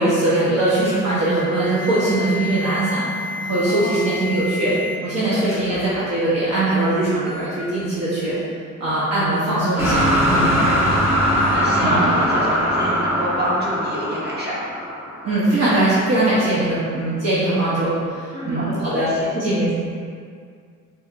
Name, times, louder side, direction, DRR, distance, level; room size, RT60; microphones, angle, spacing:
voice 1, 0.0-3.1 3.4-4.7 5.0-8.4 8.8-10.5 11.8-12.0 15.2-19.1 19.3-19.7, right 2 dB, 55° right, -9 dB, 1.0 m, -21 dB
Alarm, 1.0-5.0 5.3-5.7 6.6-6.7 7.3-7.5 9.3-9.5 11.4-11.6, left 4 dB, 10° left, 0.6 m, -31 dB
voice 2, 3.7-4.0 10.3-11.1 11.3-14.5 18.3-19.0, equal, 35° right, -8 dB, 1.4 m, -27 dB
sound 1, 9.8-15.8, equal, 5° right, 1.2 m, -21 dB
4.1 x 4.1 x 2.5 m, 2.2 s
cardioid pair, 90°, 30 cm